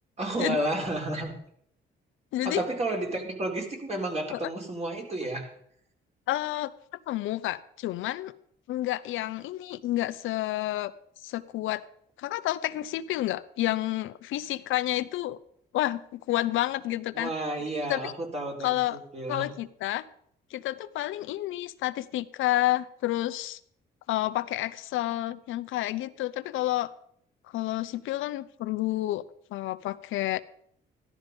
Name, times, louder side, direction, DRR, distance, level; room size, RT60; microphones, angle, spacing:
voice 1, 0.2-1.3 2.4-5.5 17.1-19.5, right 1 dB, 35° right, 1 dB, 4.1 m, -31 dB
voice 2, 2.3-2.6 4.3-4.5 6.3-6.7 7.1-8.3 8.7-10.9 11.2-11.8 12.2-15.4 15.7-17.3 17.9-18.1 18.6-19.0 19.3-20.0 20.5-23.6 24.1-26.9 27.5-29.2 29.5-30.4, left 15 dB, 85° left, 13 dB, 0.7 m, -30 dB
14.5 x 12.0 x 5.3 m, 0.67 s
cardioid pair, 90°, 20 cm